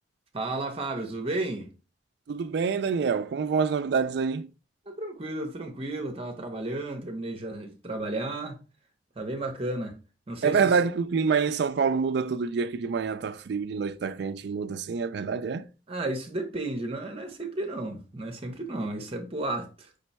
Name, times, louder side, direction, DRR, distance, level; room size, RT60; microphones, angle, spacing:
voice 1, 0.3-1.7 4.9-8.6 9.2-10.0 10.3-10.7 15.9-19.9, right 2 dB, 30° right, 0.8 m, -33 dB
voice 2, 2.3-4.5 10.4-15.6, right 5 dB, 60° right, 0.3 m, -26 dB
5.2 x 2.2 x 4.0 m
head